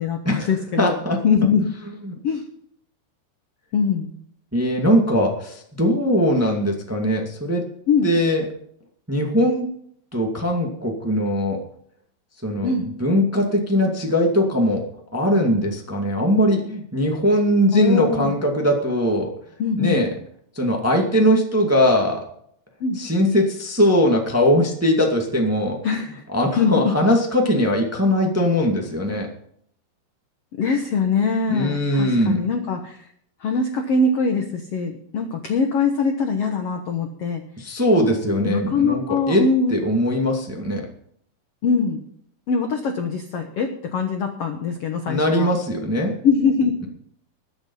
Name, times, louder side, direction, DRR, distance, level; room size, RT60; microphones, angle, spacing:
voice 1, 0.0-1.0 1.2-1.7 2.2-2.4 3.7-4.1 7.9-8.1 12.6-12.9 17.7-18.3 19.6-20.0 22.8-23.0 25.8-26.2 26.6-26.9 30.6-33.0 33.4-37.4 38.5-39.7 41.6-42.0 42.5-45.5 46.2-46.7, left 5 dB, 80° left, 4 dB, 1.3 m, -22 dB
voice 2, 0.8-1.2 2.1-2.2 4.5-7.7 8.0-8.4 9.1-9.7 10.1-11.6 12.4-14.9 15.1-19.3 19.8-20.1 20.5-22.2 23.0-25.8 26.3-29.3 31.5-32.5 37.6-39.4 39.7-40.9 45.1-46.1, equal, 20° right, 1 dB, 0.4 m, -20 dB
21.0 x 7.2 x 5.5 m, 0.67 s
omnidirectional pair, 4.6 m